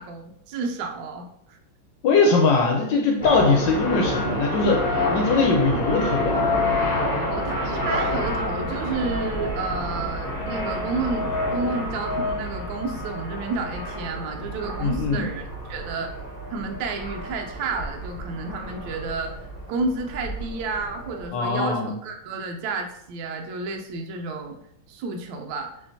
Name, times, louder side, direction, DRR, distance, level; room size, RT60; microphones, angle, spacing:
voice 1, 0.0-1.6 7.3-16.1 16.5-19.4 19.7-24.6 24.9-25.7, right 3 dB, 75° right, 3 dB, 1.3 m, -31 dB
voice 2, 2.0-6.5 14.8-15.2 21.3-22.0, left 4 dB, 70° left, 1 dB, 1.2 m, -21 dB
sound 1, 3.2-21.3, left 1 dB, 35° left, 0.9 m, -28 dB
6.8 x 2.9 x 2.7 m, 0.76 s
omnidirectional pair, 2.2 m